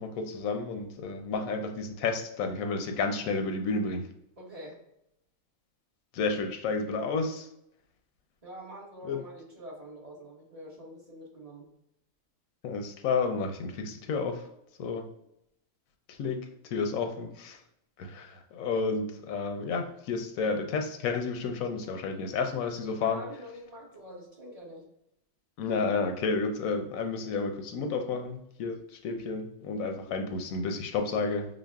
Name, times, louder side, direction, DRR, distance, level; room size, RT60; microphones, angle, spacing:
voice 1, 0.0-4.1 6.1-7.5 9.0-9.2 12.6-14.4 14.8-15.1 16.1-17.6 18.0-23.2 25.6-31.5, left 4 dB, 90° left, 6 dB, 1.0 m, -31 dB
voice 2, 4.4-4.8 8.4-11.7 23.0-24.9 29.8-30.1, equal, 30° right, -5 dB, 1.0 m, -46 dB
5.9 x 2.1 x 2.3 m, 0.79 s
omnidirectional pair, 1.4 m